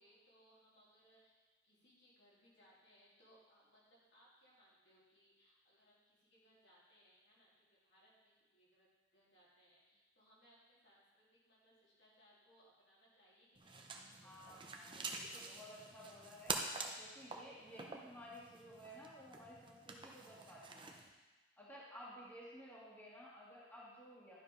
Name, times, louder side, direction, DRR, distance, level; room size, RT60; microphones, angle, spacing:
voice 1, 0.0-15.2 17.6-17.8, equal, 75° left, -7 dB, 3.5 m, -70 dB
sound 1, 13.5-21.1, right 3 dB, 25° right, 0.8 m, -47 dB
voice 2, 14.2-16.6 17.0-21.0 21.6-24.4, equal, 10° left, -7 dB, 1.8 m, -55 dB
11.5 x 5.1 x 5.2 m, 1.2 s
head